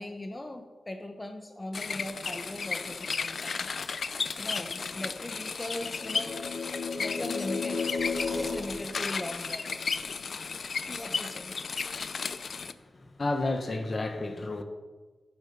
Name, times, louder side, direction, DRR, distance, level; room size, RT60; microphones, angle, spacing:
voice 1, 0.0-3.8 4.4-6.4 7.0-7.8 8.3-9.8 10.9-11.6, left 1 dB, 25° left, 5 dB, 1.1 m, -39 dB
sound 1, 1.7-12.7, left 5 dB, 65° left, 0.5 m, -34 dB
sound 2, 5.8-9.7, left 4 dB, 85° left, 2.0 m, -34 dB
sound 3, 7.6-8.9 9.2-9.3 9.7-10.4, right 1 dB, 10° right, 1.1 m, -46 dB
voice 2, 13.2-14.6, left 2 dB, 45° left, 6 dB, 1.3 m, -30 dB
10.5 x 8.9 x 5.6 m, 1.3 s
cardioid pair, 50°, 0 cm